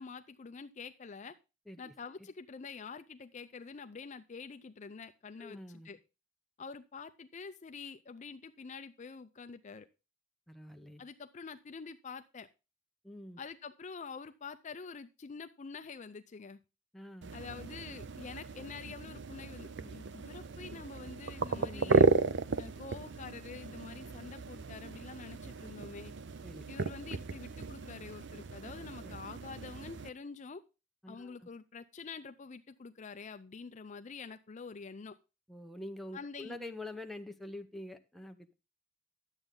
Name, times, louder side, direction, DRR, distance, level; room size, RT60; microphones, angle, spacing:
voice 1, 0.0-1.4 1.8-5.6 5.8-6.0 6.6-9.9 11.0-12.5 13.4-16.6 17.3-22.1 22.6-26.1 26.7-30.6 31.1-35.2 36.1-36.6, left 5 dB, 35° left, 10 dB, 0.5 m, -46 dB
voice 2, 5.4-5.9 10.5-11.0 13.0-13.4 16.9-17.4 21.5-22.3 26.4-26.7 29.0-29.2 31.0-31.5 35.5-38.5, left 1 dB, ahead, 5 dB, 0.8 m, -46 dB
sound 1, 17.2-30.1, right 4 dB, 60° right, 0.6 m, -34 dB
10.5 x 8.0 x 3.7 m, 0.30 s
head